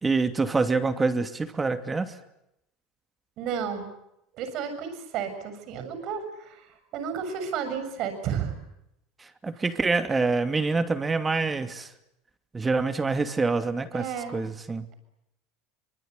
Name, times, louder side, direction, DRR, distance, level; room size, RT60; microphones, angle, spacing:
voice 1, 0.0-2.1 9.2-11.9 12.5-14.0 14.3-14.9, right 3 dB, 20° right, 9 dB, 2.6 m, -26 dB
voice 2, 3.4-3.9 4.3-8.6 9.5-9.8 13.9-14.4, right 7 dB, 55° right, 9 dB, 7.0 m, -32 dB
25.0 x 23.0 x 9.7 m, 0.83 s
supercardioid pair, 100°, 0 cm